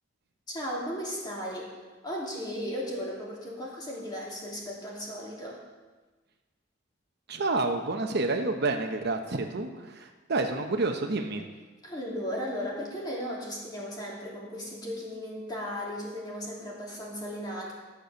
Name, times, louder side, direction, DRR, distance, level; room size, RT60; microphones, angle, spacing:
voice 1, 0.5-1.7 2.0-5.6 11.8-17.7, equal, 20° left, -4 dB, 2.9 m, -36 dB
voice 2, 7.3-11.4, right 3 dB, 60° right, 5 dB, 0.9 m, -29 dB
12.5 x 6.8 x 6.4 m, 1.3 s
head